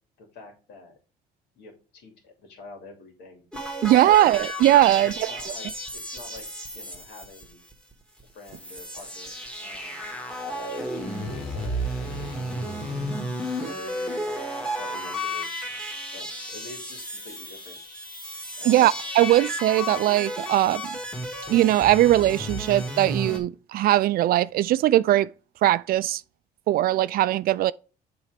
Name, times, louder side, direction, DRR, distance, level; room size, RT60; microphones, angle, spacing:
voice 1, 0.2-0.9 1.6-3.5 3.8-4.3 4.9-6.5 6.7-7.6 8.3-10.2 11.1-13.1 13.6-15.7 16.1-17.8 18.6-19.0, left 3 dB, 75° left, 2.8 m, -46 dB
sound 1, 3.5-7.9 8.2-8.3 8.5-23.4, equal, 5° left, 1.8 m, -33 dB
voice 2, 3.8-5.3 18.6-20.8 21.5-25.3 25.6-26.2 26.7-27.7, right 14 dB, 60° right, 0.4 m, -20 dB
sound 2, 10.6-18.9, left 4 dB, 60° left, 2.0 m, -49 dB
7.3 x 3.9 x 5.1 m
cardioid pair, 110°, 17 cm